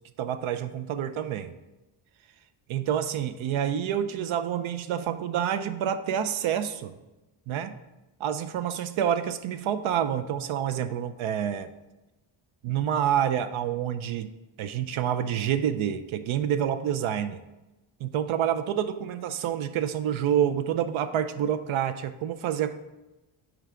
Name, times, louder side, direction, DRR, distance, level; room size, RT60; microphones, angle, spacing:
voice 1, 0.2-1.6 2.7-7.0 7.5-7.7 8.2-11.7 12.6-14.3 14.6-17.4 18.0-22.7, right 9 dB, 75° right, 11 dB, 0.6 m, -28 dB
8.9 x 4.7 x 3.7 m, 1.0 s
wide cardioid pair, 175°, 48 cm